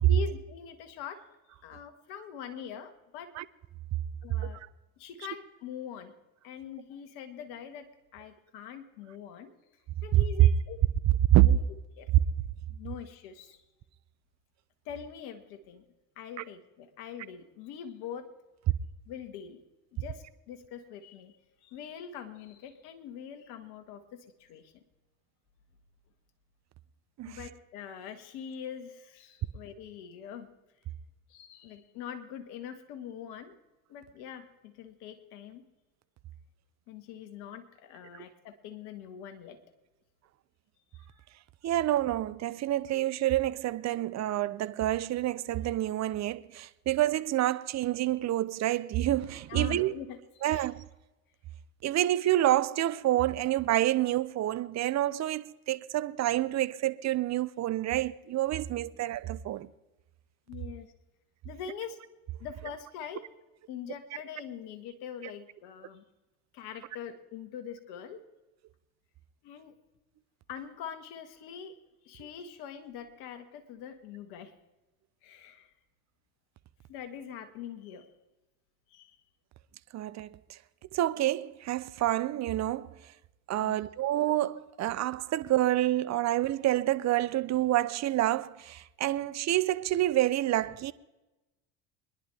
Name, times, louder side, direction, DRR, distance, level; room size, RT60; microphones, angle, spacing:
voice 1, 0.0-1.2 1.6-3.3 4.2-4.6 5.0-6.1 6.4-7.9 8.1-9.5 10.0-10.8 11.4-11.6 12.0-12.1 12.7-13.6 14.8-15.8 16.1-18.3 19.1-19.6 19.9-21.4 21.6-24.7 27.2-30.5 31.3-33.5 33.9-35.6 36.9-39.6 49.5-50.7 60.5-60.9 61.4-62.0 62.4-63.2 63.7-66.0 66.5-68.2 69.4-69.7 70.5-71.7 72.0-74.5 75.2-75.7 76.9-78.1 78.9-79.2 83.6-83.8 86.1-86.3, left 8 dB, 65° left, 1.8 m, -43 dB
voice 2, 10.1-10.5 11.3-11.5 27.2-27.4 38.1-38.2 41.6-49.9 50.4-50.8 51.8-59.7 79.9-80.6 80.9-82.9 83.5-90.9, right 14 dB, 40° right, 0.7 m, -28 dB
23.5 x 11.0 x 3.4 m
hypercardioid pair, 75°, 41 cm